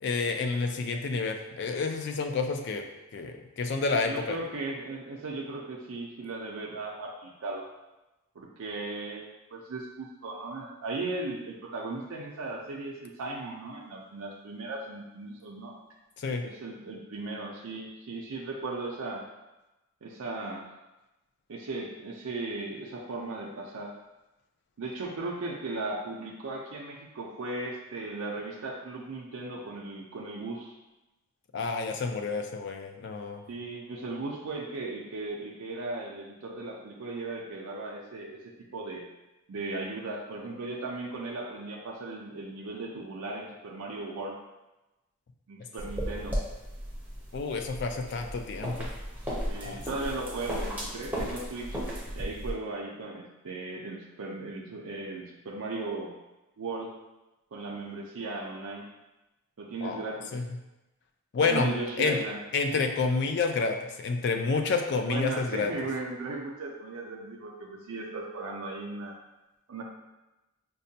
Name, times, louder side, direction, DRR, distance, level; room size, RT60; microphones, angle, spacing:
voice 1, 0.0-2.8 3.1-4.4 16.2-16.4 31.5-33.4 47.3-48.9 49.6-49.8 59.8-60.0 60.3-60.4 61.3-61.7 62.0-62.2 62.5-65.7, left 4 dB, 50° left, 5 dB, 0.4 m, -29 dB
voice 2, 4.1-7.7 8.4-15.7 16.4-19.2 20.0-20.6 21.5-23.9 24.8-30.7 33.5-39.0 39.5-44.4 45.5-46.4 49.5-51.8 52.1-56.1 56.6-56.9 57.5-58.9 59.6-60.4 61.4-62.4 65.0-69.2 69.7-69.8, right 2 dB, 75° right, -2 dB, 0.5 m, -37 dB
sound 1, 45.8-52.5, equal, 5° right, 0.6 m, -35 dB
5.2 x 2.2 x 2.7 m, 1.0 s
head